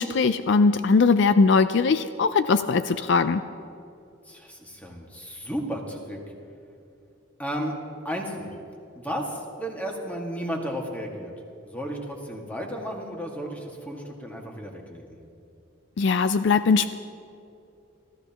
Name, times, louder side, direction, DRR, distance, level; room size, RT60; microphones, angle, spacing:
voice 1, 0.0-3.4 16.0-16.9, left 4 dB, 60° left, 11 dB, 0.4 m, -20 dB
voice 2, 4.2-6.2 7.4-7.7 8.0-8.5 9.0-11.3 11.7-15.2, equal, 10° left, 0 dB, 1.9 m, -33 dB
27.0 x 15.0 x 3.0 m, 2.7 s
head